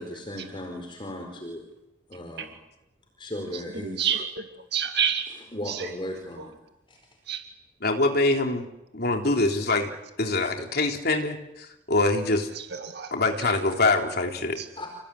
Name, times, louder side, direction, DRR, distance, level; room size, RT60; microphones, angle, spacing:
voice 1, 0.0-1.6 2.1-2.5 3.2-4.1 5.5-6.5 14.8-14.9, left 1 dB, 30° left, 2 dB, 4.6 m, -36 dB
voice 2, 3.5-4.5 4.7-5.3 5.7-5.9 6.4-6.5 7.3-7.4 12.6-13.1 14.6-14.7, right 8 dB, 65° right, 6 dB, 2.1 m, -29 dB
voice 3, 7.8-8.7 8.9-9.9 10.2-12.5 13.1-14.6, left 2 dB, 60° left, 3 dB, 3.5 m, -24 dB
30.0 x 17.0 x 10.0 m, 0.90 s
head